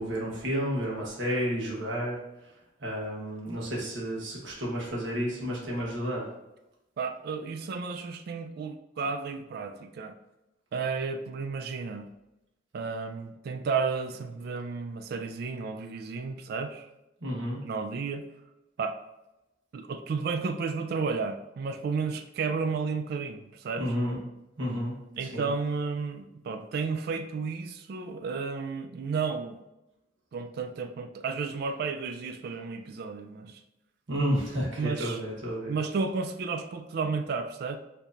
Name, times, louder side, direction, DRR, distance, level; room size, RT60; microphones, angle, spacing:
voice 1, 0.0-2.2 2.8-6.2 17.2-17.6 23.8-24.2 24.6-24.9 25.2-25.5 34.1-35.8, equal, 75° right, -3 dB, 1.1 m, -31 dB
voice 2, 7.0-10.1 10.7-12.1 12.7-16.9 17.6-18.3 18.8-19.0 19.7-23.9 25.2-29.6 30.3-33.6 34.8-35.2 35.7-37.8, right 5 dB, 55° right, 7 dB, 0.3 m, -32 dB
4.4 x 2.7 x 2.5 m, 0.93 s
head